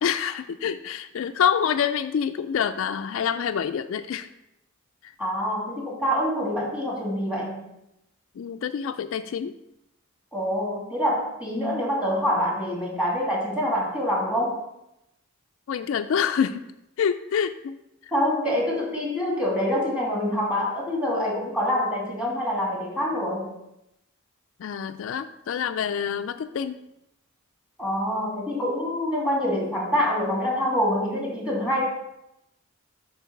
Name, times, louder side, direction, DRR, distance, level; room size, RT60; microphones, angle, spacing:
voice 1, 0.0-4.3 5.0-5.1 8.4-9.6 15.7-16.6 17.0-17.8 18.0-18.1 24.6-26.8, left 7 dB, 65° left, 10 dB, 0.3 m, -26 dB
voice 2, 5.2-7.7 10.3-14.5 18.1-23.5 27.8-31.8, equal, 5° right, -3 dB, 2.2 m, -26 dB
8.2 x 3.9 x 5.8 m, 0.86 s
head